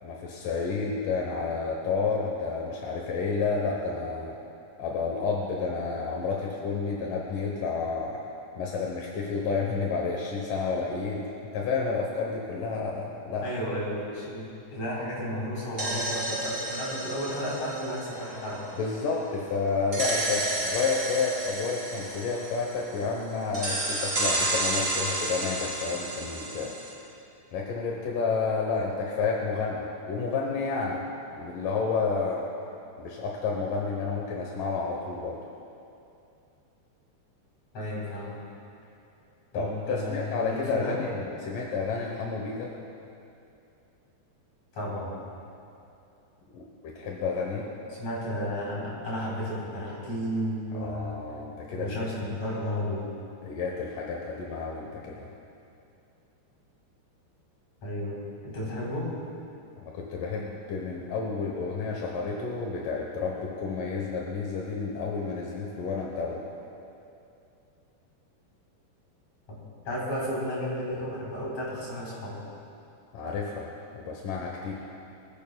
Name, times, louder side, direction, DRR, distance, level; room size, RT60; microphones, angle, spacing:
voice 1, 0.0-4.3 4.8-8.2 8.6-11.3 11.5-13.4 18.7-26.7 27.5-31.0 31.4-32.4 33.0-35.4 39.5-42.7 46.5-47.7 50.7-52.3 53.4-55.3 59.8-66.5 73.1-73.7 73.9-74.7, left 4 dB, 65° left, -2 dB, 2.3 m, -30 dB
voice 2, 13.4-18.6 37.7-38.4 39.5-41.0 44.7-45.2 48.0-51.2 51.7-53.1 57.8-59.1 69.8-72.4, equal, 40° left, -6 dB, 5.0 m, -33 dB
sound 1, 15.5-19.2 19.9-23.1 23.5-26.9, right 1 dB, 20° right, 3.6 m, -31 dB
25.0 x 15.5 x 2.3 m, 2.7 s
omnidirectional pair, 4.9 m